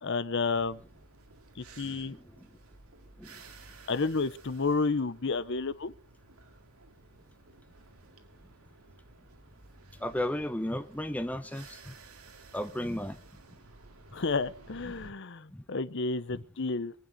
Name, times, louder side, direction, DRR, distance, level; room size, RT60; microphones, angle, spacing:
voice 1, 0.0-0.8 1.6-2.2 3.9-5.9 14.1-16.9, left 4 dB, 55° left, 0.7 m, -31 dB
sound 1, 0.5-15.1, right 3 dB, 85° right, 2.1 m, -54 dB
voice 2, 1.8-2.5 3.2-3.4 10.0-12.0 12.5-13.2 15.0-15.1 15.5-15.6, left 1 dB, 5° left, 0.8 m, -35 dB
23.5 x 9.1 x 5.2 m
head